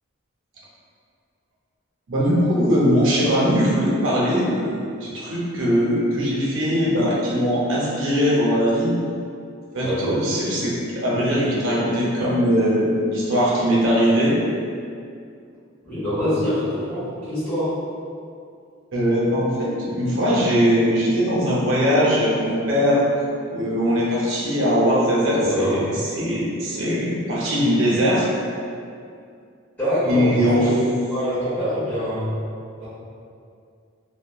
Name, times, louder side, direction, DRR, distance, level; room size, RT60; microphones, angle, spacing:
voice 1, 2.1-9.0 9.7-14.4 18.9-23.0 23.5-25.8 26.1-28.3 30.0-30.7, equal, 65° right, -6 dB, 0.6 m, -20 dB
voice 2, 9.8-10.3 15.8-17.8 25.3-25.8 29.8-30.8 31.1-32.3 32.8-32.9, equal, 10° left, -15 dB, 1.3 m, -24 dB
2.8 x 2.1 x 2.3 m, 2.4 s
head